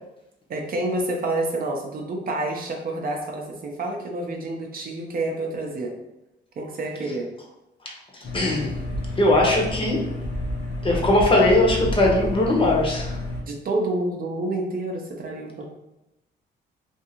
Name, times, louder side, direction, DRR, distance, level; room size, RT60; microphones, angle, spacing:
voice 1, 0.5-5.9 6.6-7.3 13.5-15.6, right 2 dB, 45° right, 1 dB, 0.5 m, -28 dB
voice 2, 7.8-8.8 9.2-10.0 10.8-13.2, left 1 dB, 25° left, -1 dB, 0.7 m, -20 dB
sound 1, 8.2-13.4, left 1 dB, 60° left, 0.8 m, -30 dB
2.5 x 2.4 x 2.8 m, 0.91 s
cardioid pair, 90°, 20 cm